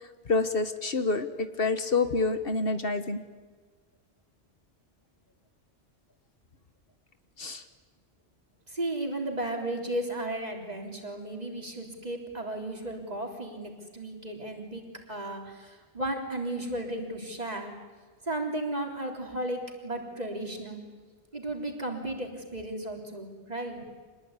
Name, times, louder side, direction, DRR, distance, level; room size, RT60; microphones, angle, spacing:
voice 1, 0.3-3.2 7.4-7.6, left 3 dB, 60° left, 9 dB, 1.6 m, -27 dB
voice 2, 8.7-17.7 18.2-20.8 21.3-23.8, right 1 dB, 40° right, 2 dB, 3.9 m, -34 dB
26.0 x 20.5 x 9.8 m, 1.4 s
omnidirectional pair, 1.1 m